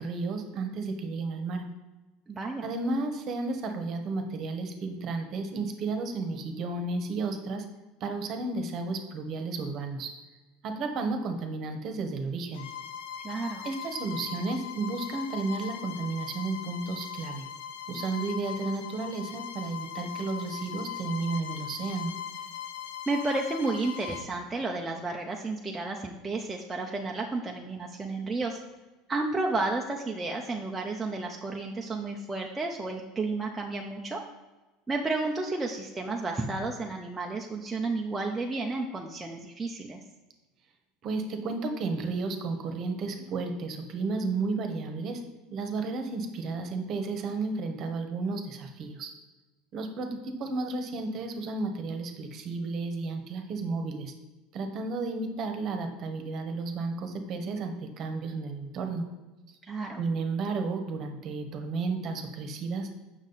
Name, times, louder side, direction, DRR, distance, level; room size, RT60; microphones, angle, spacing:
voice 1, 0.0-1.6 2.6-7.6 8.0-10.1 10.6-12.7 13.6-17.4 17.9-22.1 41.0-45.2 45.5-49.1 49.7-54.1 54.5-59.0 60.0-62.9, right 3 dB, 40° right, 6 dB, 1.0 m, -32 dB
voice 2, 2.3-2.7 13.2-13.7 23.1-28.6 29.1-34.2 34.9-40.0 59.6-60.0, right 3 dB, 10° right, 0 dB, 0.5 m, -32 dB
Bowed string instrument, 12.5-24.3, left 9 dB, 80° left, 0.6 m, -40 dB
7.3 x 6.2 x 4.0 m, 1.1 s
cardioid pair, 155°, 0 cm